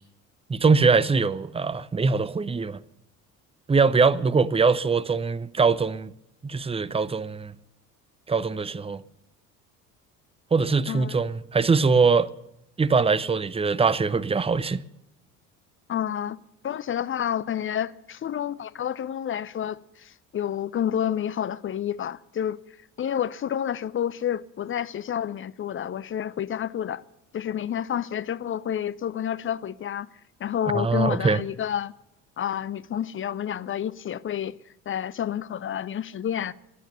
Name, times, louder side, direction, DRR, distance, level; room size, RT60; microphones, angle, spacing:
voice 1, 0.5-2.8 3.7-6.1 6.4-7.5 8.3-9.0 10.5-12.3 12.8-14.8 30.7-31.4, right 4 dB, 15° right, 0.7 m, -22 dB
voice 2, 15.9-22.6 23.0-27.0 27.3-30.1 30.4-31.9 32.4-34.6 34.9-36.5, left 9 dB, 30° left, 0.6 m, -29 dB
18.0 x 11.5 x 6.8 m
figure-of-eight pair, 60°, 44 cm